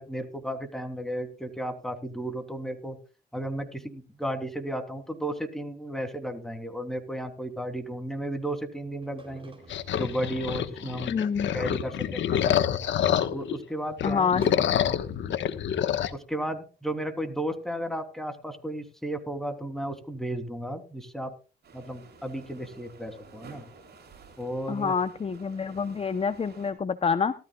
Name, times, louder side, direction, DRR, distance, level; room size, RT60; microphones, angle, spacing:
voice 1, 0.0-3.0 3.3-9.5 9.9-11.1 11.5-12.8 13.3-14.3 16.1-21.3 21.7-23.6 24.4-24.9, right 1 dB, ahead, 6 dB, 3.2 m, -34 dB
sound 1, 9.0-11.0 11.4-11.5 11.8-11.9 12.1-12.4 12.8-12.9 14.4-16.3 16.5-16.6 17.1-17.2 17.5-17.6, right 2 dB, 25° right, 3.6 m, -50 dB
sound 2, 9.7-13.6 13.9-16.1, left 10 dB, 70° left, 1.3 m, -27 dB
voice 2, 11.1-11.5 14.0-14.4 24.7-27.3, left 6 dB, 30° left, 12 dB, 0.8 m, -27 dB
sound 3, 21.6-26.7, right 4 dB, 55° right, 7.1 m, -51 dB
18.5 x 13.5 x 2.4 m, 0.33 s
cardioid pair, 90°, 20 cm